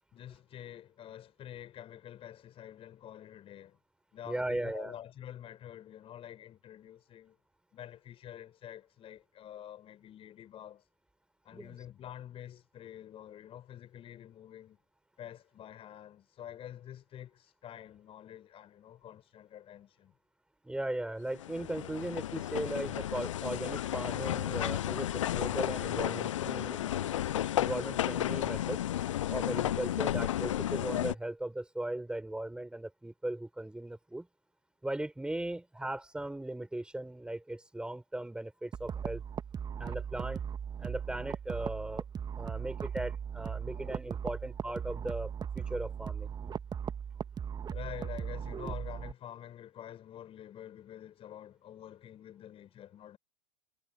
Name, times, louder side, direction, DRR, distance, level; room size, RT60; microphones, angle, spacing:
voice 1, 0.1-3.8 4.1-7.4 7.7-10.8 11.4-14.8 15.2-20.1 43.7-43.9 47.7-53.2, left 11 dB, 35° left, 6.0 m, -48 dB
voice 2, 4.3-4.9 11.5-11.7 20.6-27.1 27.6-28.8 29.3-34.3 34.8-39.2 39.8-40.4 40.8-42.0 42.4-45.3 45.6-46.5, right 1 dB, 5° right, 5.2 m, -38 dB
sound 1, 21.3-31.1, left 12 dB, 70° left, 0.6 m, -33 dB
sound 2, 38.7-49.1, right 7 dB, 25° right, 1.7 m, -38 dB
figure-of-eight pair, 85°, 16 cm